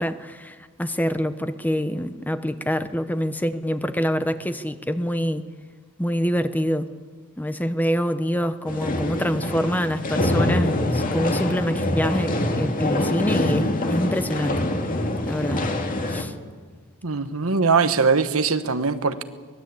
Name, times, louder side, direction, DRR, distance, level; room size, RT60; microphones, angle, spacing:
voice 1, 0.0-5.4 6.0-6.9 7.4-14.7 15.3-15.7 16.1-16.3, equal, 10° left, 0.9 m, -25 dB
sound 1, 8.7-16.2, left 1 dB, 40° left, 2.2 m, -24 dB
voice 2, 17.0-19.2, right 5 dB, 75° right, 1.3 m, -21 dB
23.5 x 20.0 x 8.5 m
head